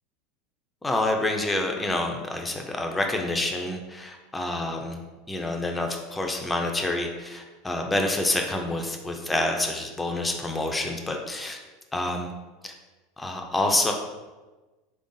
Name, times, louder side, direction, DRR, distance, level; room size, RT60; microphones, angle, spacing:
voice 1, 0.8-5.0 5.3-11.6 11.9-12.3 12.6-12.7 13.2-13.9, left 2 dB, 10° left, 2 dB, 0.4 m, -27 dB
3.7 x 3.4 x 2.6 m, 1.2 s
supercardioid pair, 130°, 0 cm